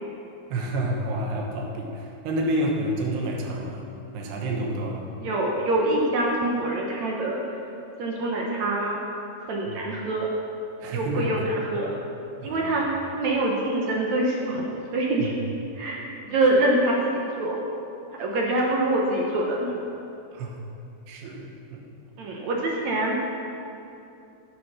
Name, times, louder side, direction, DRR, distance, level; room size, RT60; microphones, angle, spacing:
voice 1, 0.5-3.8 4.1-5.1 9.7-9.8 10.8-11.3 12.4-12.7 15.2-15.3 20.3-20.6 21.1-21.9, right 1 dB, 85° right, 0 dB, 3.4 m, -29 dB
voice 2, 5.2-7.6 8.0-9.0 9.4-10.3 10.9-12.0 12.4-15.3 15.7-17.6 18.1-19.7 22.2-23.2, right 1 dB, 65° right, -2 dB, 1.8 m, -25 dB
11.5 x 9.7 x 6.0 m, 2.7 s
omnidirectional pair, 4.7 m